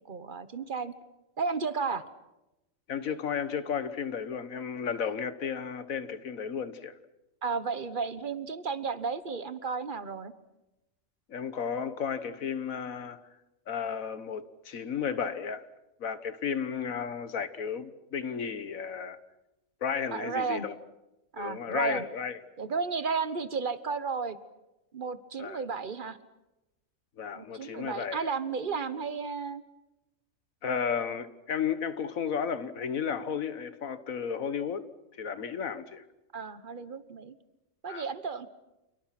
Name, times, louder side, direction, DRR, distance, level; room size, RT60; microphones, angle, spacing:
voice 1, 0.1-0.9 1.4-2.0 7.4-10.3 20.1-20.6 21.3-22.0 22.6-24.4 24.9-26.2 27.3-29.6 36.3-37.4 37.8-38.5, right 5 dB, 40° right, 1.3 m, -33 dB
voice 2, 2.9-7.0 11.3-13.2 13.7-15.6 16.0-19.2 19.8-20.7 21.4-22.4 25.4-25.6 27.2-28.2 30.6-34.9 35.2-36.0 37.9-38.1, left 7 dB, 85° left, 1.7 m, -33 dB
29.5 x 28.0 x 6.0 m
omnidirectional pair, 1.4 m